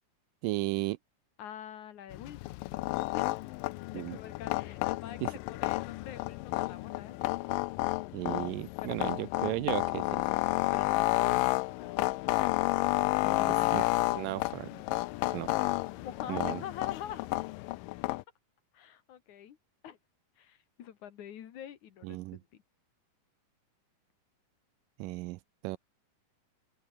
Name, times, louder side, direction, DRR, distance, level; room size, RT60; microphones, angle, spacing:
voice 1, 0.4-1.0 3.9-4.2 5.2-5.3 8.1-10.2 13.7-14.7 15.3-15.5 16.3-16.6 22.0-22.4 25.0-25.8, right 20 dB, 85° right, 2.2 m, -35 dB
voice 2, 1.4-2.7 3.1-3.4 3.9-7.2 8.8-9.3 10.7-12.1 13.2-13.8 15.9-17.4 18.7-19.6 19.8-20.0 20.4-22.6, left 10 dB, 65° left, 2.9 m, -45 dB
sound 1, 2.1-18.2, left 21 dB, 85° left, 2.3 m, -31 dB
omnidirectional pair, 3.8 m